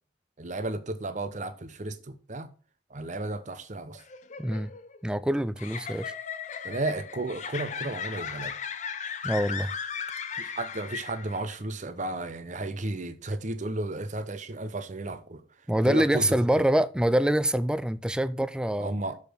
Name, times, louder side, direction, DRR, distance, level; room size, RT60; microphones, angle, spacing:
voice 1, 0.4-2.5 2.9-4.0 6.6-8.5 10.3-15.4 15.8-16.6 18.8-19.2, right 2 dB, 40° right, 0.8 m, -33 dB
sound 1, 3.9-11.6, left 7 dB, 40° left, 0.7 m, -37 dB
voice 2, 4.4-4.7 5.0-6.1 9.2-9.7 15.7-18.9, right 1 dB, 5° right, 0.3 m, -25 dB
6.8 x 5.2 x 6.0 m
head